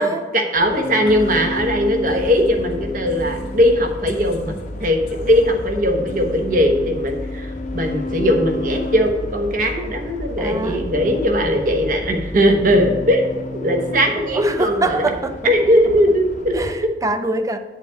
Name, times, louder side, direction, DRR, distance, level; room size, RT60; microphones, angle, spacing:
voice 1, 0.3-4.5 4.8-13.2 13.6-15.1 15.4-16.6, equal, 50° right, 3 dB, 1.1 m, -19 dB
sound 1, 0.5-16.7, left 2 dB, 45° left, 0.7 m, -32 dB
sound 2, 1.1-13.1, left 1 dB, 85° left, 1.0 m, -34 dB
voice 2, 10.4-10.9 14.3-15.5 16.5-17.6, right 2 dB, 20° right, 9 dB, 0.5 m, -24 dB
8.2 x 8.0 x 3.5 m, 1.3 s
head